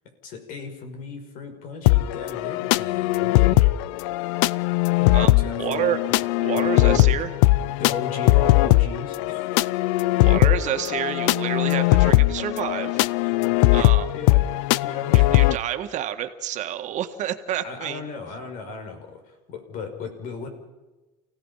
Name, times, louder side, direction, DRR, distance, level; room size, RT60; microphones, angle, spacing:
voice 1, 0.2-3.7 4.9-5.9 6.8-7.1 7.8-9.8 10.3-10.5 13.0-13.9 14.1-14.5 14.8-15.3 17.6-20.5, left 5 dB, 60° left, 5 dB, 6.0 m, -36 dB
Feel the Beat (Loop), 1.9-15.6, left 18 dB, 85° left, 0.6 m, -20 dB
voice 2, 5.6-6.0 6.4-7.3 10.2-13.0 13.7-14.1 15.1-18.1, right 11 dB, 50° right, 7 dB, 1.9 m, -29 dB
29.0 x 17.0 x 5.8 m, 1.1 s
supercardioid pair, 120°, 16 cm